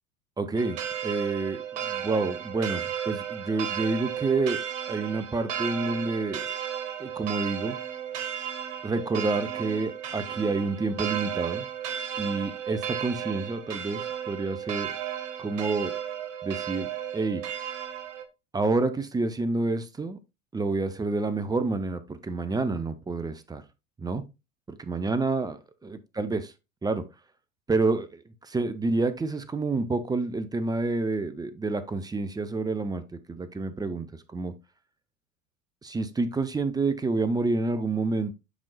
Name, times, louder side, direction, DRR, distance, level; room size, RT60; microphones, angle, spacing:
voice 1, 0.4-4.6 4.9-6.5 7.0-7.8 8.8-11.7 12.2-14.9 15.4-15.9 16.4-17.4 18.5-20.2 20.5-23.6 24.0-24.2 24.7-25.5 25.8-26.5 26.8-27.0 27.7-34.1 34.3-34.5 35.8-38.3, right 3 dB, 10° right, 0.6 m, -28 dB
sound 1, 0.6-18.2, right 9 dB, 60° right, 1.0 m, -34 dB
7.9 x 5.3 x 2.3 m
figure-of-eight pair, 75°, 40 cm